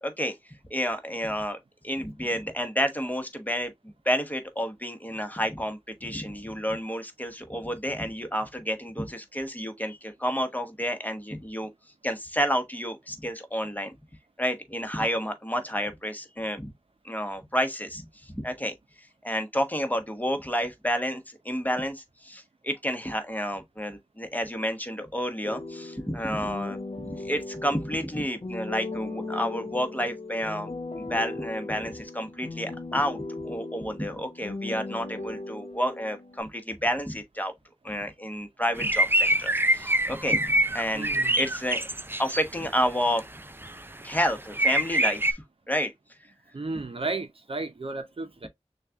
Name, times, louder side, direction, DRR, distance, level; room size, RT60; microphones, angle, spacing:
voice 1, 0.0-0.3 0.7-1.6 1.8-11.7 12.0-13.9 14.4-16.7 17.0-18.0 18.3-18.7 19.2-30.7 31.0-37.5 37.8-41.8 42.2-43.2 44.0-45.9, equal, 15° left, 1.0 m, -30 dB
sound 1, 25.4-36.4, left 2 dB, 70° left, 1.0 m, -37 dB
sound 2, 38.8-42.4 43.0-43.2 43.6-43.8 44.1-44.2 44.5-45.3, right 1 dB, 20° right, 0.4 m, -24 dB
voice 2, 40.9-41.4 46.5-48.5, right 3 dB, 55° right, 0.7 m, -33 dB
6.4 x 2.4 x 2.4 m
wide cardioid pair, 40°, 11 cm